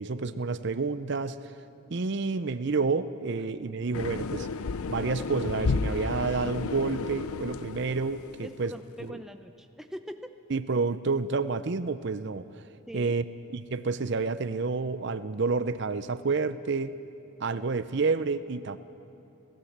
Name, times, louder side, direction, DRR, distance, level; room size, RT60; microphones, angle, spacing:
voice 1, 0.0-1.5 1.9-4.5 4.9-8.7 9.0-9.2 10.5-12.5 12.9-13.2 13.5-17.0 17.4-18.8, right 4 dB, 55° right, 13 dB, 0.6 m, -29 dB
sound 1, 3.9-8.6, left 4 dB, 85° left, 0.6 m, -32 dB
voice 2, 8.4-10.3 12.9-13.1, equal, ahead, 7 dB, 0.5 m, -42 dB
30.0 x 14.5 x 7.3 m, 2.7 s
head